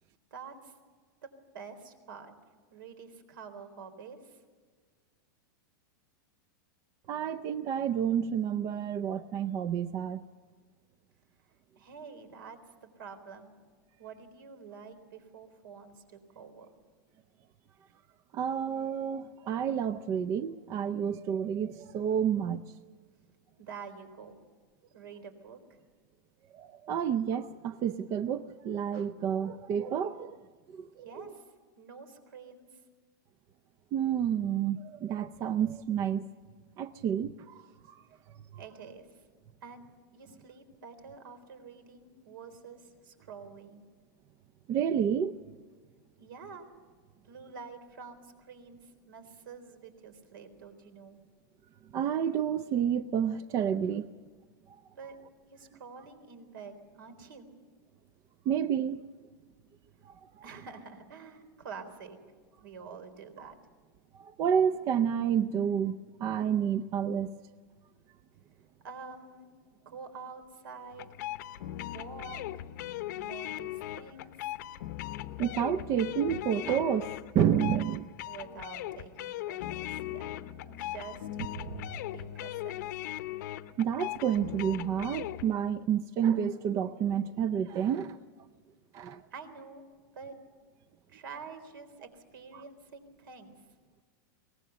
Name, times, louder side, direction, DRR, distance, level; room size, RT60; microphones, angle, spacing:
voice 1, 0.3-0.7 1.5-2.3 2.7-4.4 11.8-13.5 14.0-16.7 23.6-24.4 24.9-25.8 31.0-31.4 31.8-32.6 38.6-39.2 39.6-39.8 40.1-43.8 46.2-46.7 47.2-51.2 55.0-55.2 55.5-57.5 60.4-62.2 62.6-63.6 68.8-69.5 69.9-71.1 71.8-72.6 73.1-74.5 78.2-80.3 80.8-81.3 82.1-83.0 89.3-89.8 90.1-90.4 91.1-93.5, right 5 dB, 75° right, 3.8 m, -47 dB
voice 2, 7.1-10.2 18.3-22.6 26.5-30.4 30.7-31.1 33.9-36.3 36.8-38.0 44.7-45.4 51.9-54.1 58.5-59.0 60.1-60.2 64.2-67.3 75.4-78.1 81.6-82.0 83.8-88.2 88.9-89.2, right 8 dB, 25° right, 0.5 m, -30 dB
sound 1, 70.9-85.5, left 13 dB, 55° left, 0.8 m, -39 dB
23.0 x 19.0 x 6.8 m
supercardioid pair, 165°, 11 cm